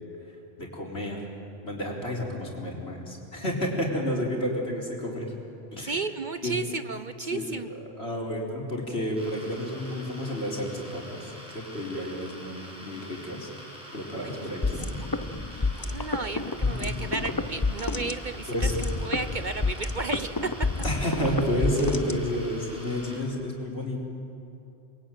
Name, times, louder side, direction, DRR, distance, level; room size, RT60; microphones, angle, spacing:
voice 1, 0.6-1.2 1.6-5.3 5.7-5.9 6.4-6.5 7.3-13.5 13.9-14.9 15.4-15.9 16.6-16.9 18.5-18.8 20.8-24.0, equal, 65° left, -2 dB, 4.6 m, -31 dB
voice 2, 5.8-7.7 14.2-14.5 15.5-20.5, right 4 dB, 50° right, 10 dB, 0.8 m, -33 dB
sound 1, 9.1-23.2, equal, 5° right, 7.4 m, -46 dB
sound 2, 14.6-22.6, left 3 dB, 20° left, 0.8 m, -29 dB
29.0 x 22.0 x 9.2 m, 2.9 s
omnidirectional pair, 1.2 m